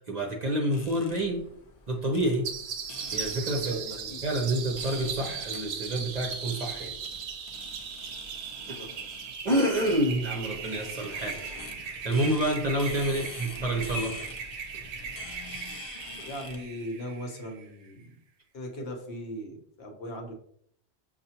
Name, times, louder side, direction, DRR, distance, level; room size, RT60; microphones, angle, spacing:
voice 1, 0.1-1.5 1.9-2.5 3.1-3.8 4.2-6.9 8.7-8.8 9.4-11.4 12.0-14.2, right 1 dB, 45° right, 0 dB, 0.7 m, -28 dB
sound 1, 0.7-16.7, left 3 dB, 40° left, 0.5 m, -46 dB
sound 2, 2.4-17.7, right 6 dB, 70° right, 0.8 m, -38 dB
voice 2, 3.5-4.2 8.6-9.2 13.0-13.2 16.2-18.1 18.5-20.3, equal, 60° left, 1 dB, 1.1 m, -39 dB
6.6 x 2.4 x 2.8 m, 0.67 s
omnidirectional pair, 1.2 m